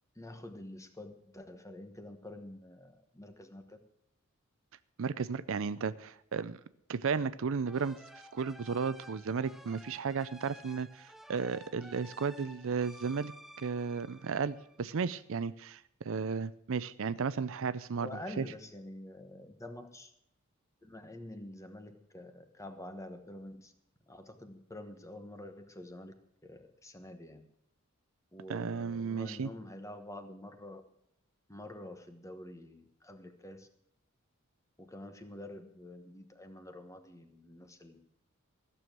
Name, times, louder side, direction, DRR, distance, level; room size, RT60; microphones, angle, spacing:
voice 1, 0.1-3.8 18.0-20.1 20.8-23.7 24.1-26.1 26.4-27.4 28.3-30.8 31.5-33.7 34.8-38.1, left 1 dB, 15° left, 8 dB, 1.2 m, -47 dB
voice 2, 5.0-6.6 6.9-8.0 8.3-13.3 13.6-18.1 18.4-18.5 28.5-29.5, right 5 dB, 65° right, 16 dB, 0.5 m, -34 dB
sound 1, 7.7-15.1, equal, ahead, 0.5 m, -54 dB
14.5 x 7.0 x 7.7 m, 0.73 s
head